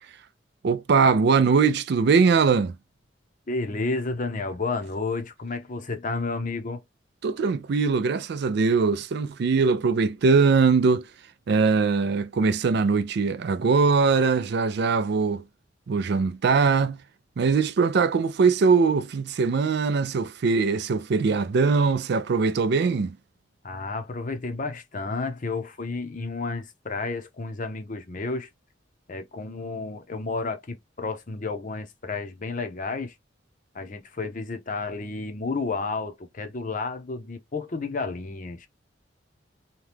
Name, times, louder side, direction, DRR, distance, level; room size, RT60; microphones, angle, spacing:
voice 1, 0.6-2.7 7.2-11.1 11.5-15.4 15.9-17.0 17.4-23.2, right 5 dB, 60° right, 0.4 m, -21 dB
voice 2, 3.5-6.8 23.6-28.5 29.1-33.1 33.7-38.7, left 3 dB, 45° left, 0.7 m, -31 dB
2.9 x 2.3 x 3.3 m
head